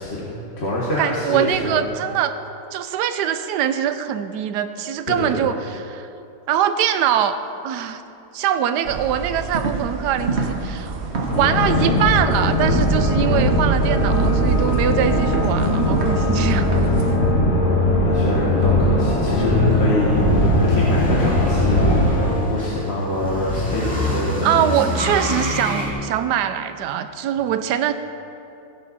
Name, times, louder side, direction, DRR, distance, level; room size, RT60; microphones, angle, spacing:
voice 1, 0.0-1.8 5.1-5.4 17.5-24.8, left 1 dB, 40° left, -5 dB, 1.5 m, -26 dB
voice 2, 1.0-2.3 2.7-5.6 5.9-6.1 6.5-7.4 7.6-8.0 8.3-11.0 11.3-16.7 24.4-27.9, right 9 dB, 70° right, 10 dB, 1.2 m, -22 dB
sound 1, 8.8-17.2, right 5 dB, 40° right, 1.1 m, -26 dB
sound 2, 11.3-22.4, left 1 dB, 55° left, 3.2 m, -19 dB
sound 3, 19.2-25.9, equal, 5° left, 2.0 m, -26 dB
16.0 x 10.5 x 4.2 m, 2.7 s
omnidirectional pair, 2.0 m